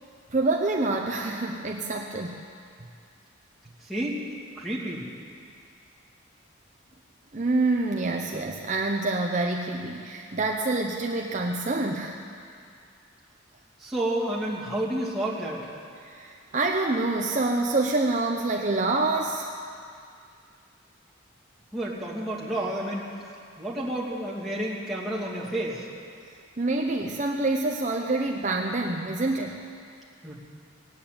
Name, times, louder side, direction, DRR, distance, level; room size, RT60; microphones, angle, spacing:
voice 1, 0.3-2.4 7.3-12.2 16.0-19.5 26.6-29.6, right 2 dB, 40° right, 1 dB, 0.8 m, -26 dB
voice 2, 3.8-4.3 4.6-5.1 13.8-15.7 21.7-23.0 23.6-25.9 30.2-30.3, right 1 dB, ahead, -5 dB, 2.7 m, -30 dB
18.0 x 8.8 x 8.7 m, 2.3 s
head